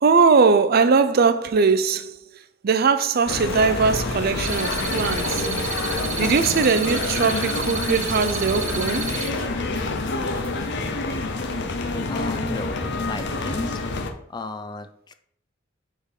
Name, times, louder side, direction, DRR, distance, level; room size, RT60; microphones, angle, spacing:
voice 1, 0.0-2.2 2.6-5.5 6.2-9.1, right 5 dB, 50° right, 0.4 m, -20 dB
sound 1, 3.3-14.1, left 3 dB, 60° left, 0.8 m, -27 dB
sound 2, 4.5-9.3, right 6 dB, 80° right, 1.0 m, -31 dB
sound 3, 5.1-10.7, left 1 dB, 75° left, 2.8 m, -43 dB
voice 2, 12.1-13.8 14.3-15.1, left 2 dB, 20° left, 0.4 m, -33 dB
4.7 x 4.4 x 5.1 m
head